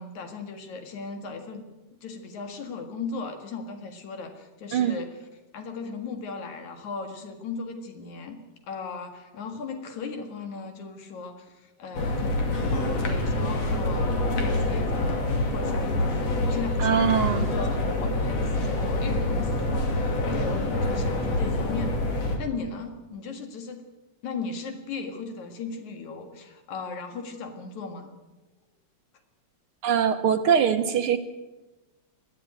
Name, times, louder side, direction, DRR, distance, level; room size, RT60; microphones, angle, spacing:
voice 1, 0.0-1.7 2.0-8.4 8.7-12.6 12.9-15.3 15.5-23.8 24.2-28.1, left 4 dB, 80° left, 6 dB, 3.2 m, -37 dB
sound 1, 11.9-22.4, left 2 dB, 60° left, 3.7 m, -26 dB
voice 2, 16.8-17.5 29.8-31.2, right 7 dB, 65° right, 7 dB, 1.5 m, -22 dB
21.0 x 13.5 x 9.1 m, 1.1 s
omnidirectional pair, 3.3 m